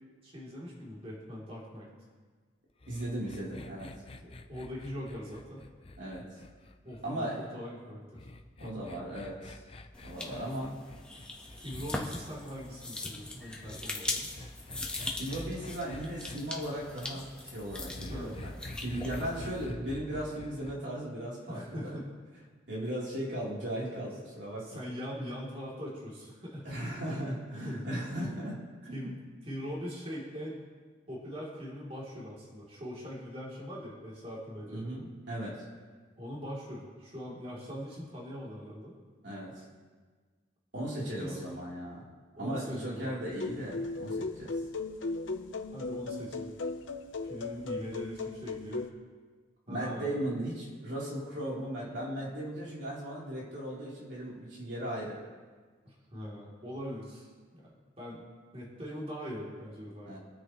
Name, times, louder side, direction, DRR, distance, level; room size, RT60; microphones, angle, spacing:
voice 1, 0.2-1.9 4.2-5.6 6.8-8.2 8.6-8.9 11.6-14.3 18.1-18.3 21.5-22.1 24.6-26.7 27.5-27.9 28.9-29.2 29.4-30.6 31.1-34.9 36.2-38.9 40.8-41.5 42.4-43.1 45.7-46.5 47.3-48.8 49.7-50.2 55.8-57.3 57.5-58.2 58.5-60.1, equal, 30° right, -6 dB, 3.3 m, -41 dB
sound 1, 2.8-7.2 8.2-12.3 13.6-16.4 17.9-20.8, left 2 dB, 30° left, 0.6 m, -46 dB
voice 2, 2.9-3.9 6.0-6.2 7.0-7.5 8.6-9.6 10.0-10.7 15.1-18.5 18.8-22.0 22.7-24.8 26.6-29.2 34.7-35.6 39.2-39.6 40.7-42.0 42.4-44.5 49.7-55.2 60.0-60.2, right 1 dB, 65° right, -6 dB, 3.7 m, -37 dB
sound 2, 9.9-19.6, left 2 dB, 5° left, 1.3 m, -41 dB
sound 3, 43.3-48.9, left 3 dB, 85° left, 0.9 m, -37 dB
25.5 x 9.5 x 3.2 m, 1.5 s
head